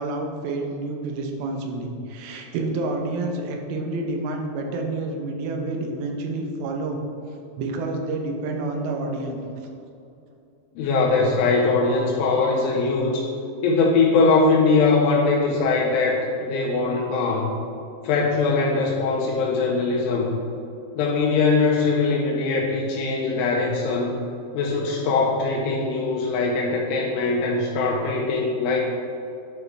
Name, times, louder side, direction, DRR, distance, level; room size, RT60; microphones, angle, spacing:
voice 1, 0.0-7.0 7.6-9.4, right 2 dB, 90° right, 2 dB, 3.1 m, -29 dB
voice 2, 10.8-13.3 13.6-17.5 18.0-20.4 21.0-24.1 24.5-28.8, left 3 dB, 85° left, -2 dB, 2.8 m, -21 dB
11.5 x 4.7 x 3.3 m, 2.6 s
omnidirectional pair, 4.9 m